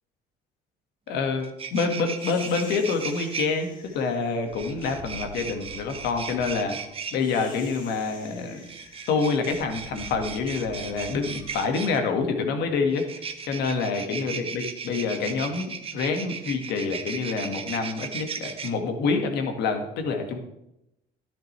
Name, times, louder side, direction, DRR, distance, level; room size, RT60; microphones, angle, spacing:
voice 1, 1.1-6.8 7.1-8.7 9.1-20.4, left 4 dB, 80° left, 5 dB, 1.7 m, -27 dB
sound 1, 1.1-1.2 1.4-3.5 4.5-7.2 8.6-12.0 12.9-18.7, right 6 dB, 35° right, 0.9 m, -36 dB
sound 2, 2.1-12.5, left 2 dB, 50° left, 4.4 m, -46 dB
12.0 x 10.0 x 3.3 m, 0.84 s
cardioid pair, 110°, 17 cm